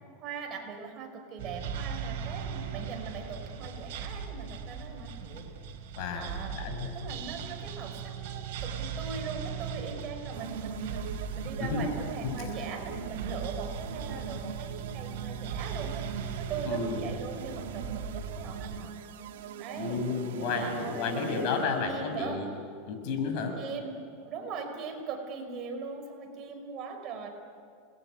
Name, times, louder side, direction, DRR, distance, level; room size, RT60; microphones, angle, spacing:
voice 1, 0.2-5.5 6.1-6.6 6.9-16.1 16.4-18.9 19.6-20.0 20.4-22.4 23.6-24.0 24.3-27.3, right 5 dB, 35° right, 3 dB, 5.3 m, -40 dB
sound 1, 1.4-18.8, right 6 dB, 65° right, 3.9 m, -38 dB
voice 2, 6.0-6.9 11.6-11.9 12.2-12.5 16.6-17.0 19.8-22.5 22.9-23.6, left 4 dB, 55° left, 5 dB, 6.3 m, -32 dB
sound 2, 10.3-21.9, right 7 dB, 85° right, 1.9 m, -42 dB
29.5 x 21.5 x 9.4 m, 2.2 s
supercardioid pair, 150°, 0 cm